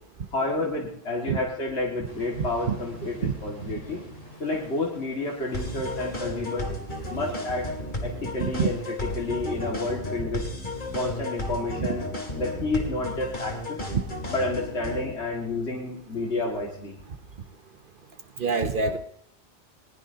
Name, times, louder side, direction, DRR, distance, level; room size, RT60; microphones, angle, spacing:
voice 1, 0.3-4.0 4.4-6.7 7.1-7.7 8.0-10.4 10.9-12.1 12.4-13.8 14.3-16.9, left 2 dB, 80° left, -2 dB, 2.4 m, -30 dB
sound 1, 2.0-9.9, equal, 65° left, 7.7 m, -47 dB
sound 2, 5.5-15.1, left 1 dB, 45° left, 2.6 m, -33 dB
voice 2, 18.4-19.0, right 5 dB, 55° right, 8 dB, 1.0 m, -25 dB
20.5 x 20.0 x 2.8 m, 0.68 s
omnidirectional pair, 1.1 m